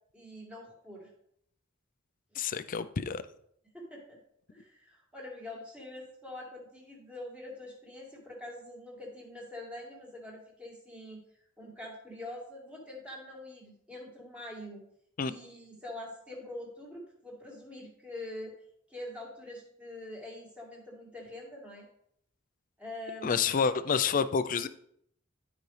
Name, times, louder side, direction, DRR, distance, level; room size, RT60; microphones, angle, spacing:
voice 1, 0.1-1.1 3.7-4.2 4.5-11.2 11.6-14.8 15.3-18.5 18.9-21.9 22.8-23.5, left 1 dB, 5° right, -3 dB, 2.3 m, -44 dB
voice 2, 2.4-3.2 15.2-15.3 23.2-24.7, left 6 dB, 40° left, 13 dB, 0.4 m, -28 dB
12.0 x 5.1 x 3.3 m, 0.71 s
head